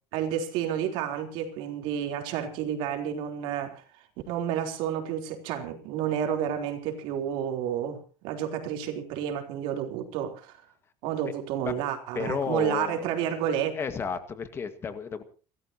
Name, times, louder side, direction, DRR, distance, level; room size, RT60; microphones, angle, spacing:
voice 1, 0.1-3.8 4.3-10.6 11.0-13.7, right 9 dB, 70° right, 3.8 m, -30 dB
voice 2, 12.1-13.3 13.7-15.2, left 6 dB, 25° left, 1.9 m, -32 dB
29.5 x 13.5 x 3.0 m
cardioid pair, 155°, 9 cm